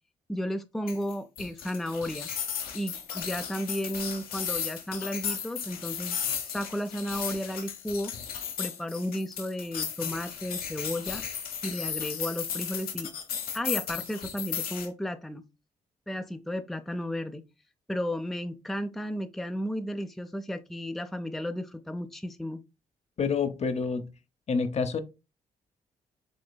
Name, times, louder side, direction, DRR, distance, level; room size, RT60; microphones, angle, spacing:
voice 1, 0.3-2.3 2.7-6.2 6.4-8.1 8.6-11.2 11.6-13.1 13.5-15.4 16.1-17.4 17.9-22.6, equal, ahead, 0.5 m, -33 dB
sound 1, 0.9-14.9, left 8 dB, 75° left, 0.9 m, -35 dB
voice 2, 23.2-24.1 24.5-25.0, left 5 dB, 45° left, 0.7 m, -27 dB
5.1 x 3.1 x 2.2 m
supercardioid pair, 55°, 15 cm